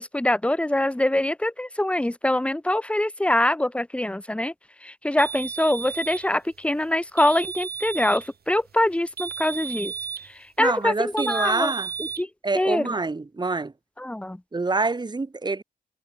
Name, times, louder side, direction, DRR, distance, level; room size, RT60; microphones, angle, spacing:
voice 1, 0.0-4.5 4.8-9.9 10.3-11.7 12.2-12.3 12.5-12.9 14.0-14.4, left 1 dB, 5° left, 0.8 m, -24 dB
sound 1, 5.2-6.3 7.2-8.3 9.2-10.3 11.2-12.2, right 7 dB, 65° right, 2.9 m, -33 dB
voice 2, 10.6-11.9 12.4-13.7 14.5-15.6, right 3 dB, 25° right, 1.2 m, -26 dB
cardioid pair, 80°, 17 cm